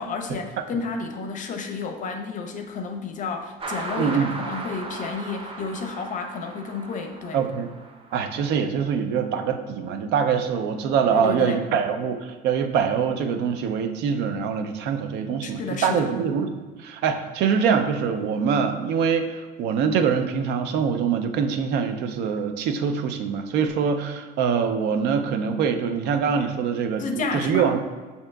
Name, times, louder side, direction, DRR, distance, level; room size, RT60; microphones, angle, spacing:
voice 1, 0.0-7.4 11.1-11.6 15.4-16.1 27.0-27.7, left 4 dB, 50° left, 4 dB, 0.6 m, -31 dB
sound 1, 3.6-8.4, right 3 dB, 35° right, 0.5 m, -36 dB
voice 2, 4.0-4.4 7.3-7.7 8.1-27.8, right 6 dB, 85° right, 8 dB, 0.4 m, -24 dB
7.5 x 2.8 x 2.2 m, 1.4 s
cardioid pair, 110°, 17 cm